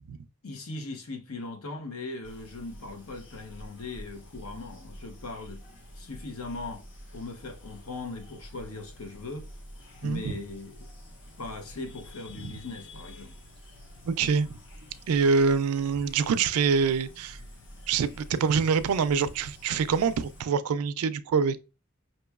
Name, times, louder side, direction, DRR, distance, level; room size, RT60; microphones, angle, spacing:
voice 1, 0.4-5.6 5.9-6.8 7.1-9.5 10.0-10.9 11.4-13.3, left 3 dB, 80° left, 0.7 m, -39 dB
sound 1, 2.2-20.4, equal, 55° left, 1.0 m, -48 dB
voice 2, 10.0-10.4 12.4-12.5 14.1-14.6 15.1-17.4 17.9-21.6, right 5 dB, 85° right, 0.4 m, -25 dB
5.3 x 3.0 x 2.3 m
head